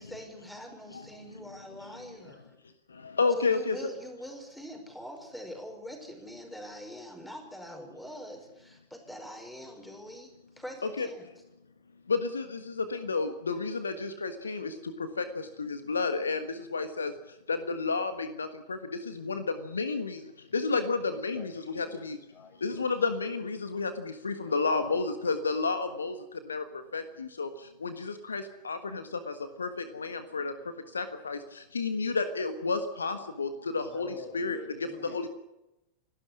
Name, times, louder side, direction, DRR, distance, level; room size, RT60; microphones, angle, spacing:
voice 1, 0.0-2.5 3.4-11.3, equal, 5° left, 4 dB, 5.4 m, -44 dB
voice 2, 2.9-3.8 11.0-11.1 12.1-22.2 22.6-34.6 35.0-35.3, left 4 dB, 75° left, 10 dB, 1.5 m, -31 dB
voice 3, 21.1-22.9 24.4-25.5 33.9-35.3, left 4 dB, 30° left, 4 dB, 7.0 m, -48 dB
28.5 x 12.5 x 10.0 m, 0.96 s
figure-of-eight pair, 90°, 0 cm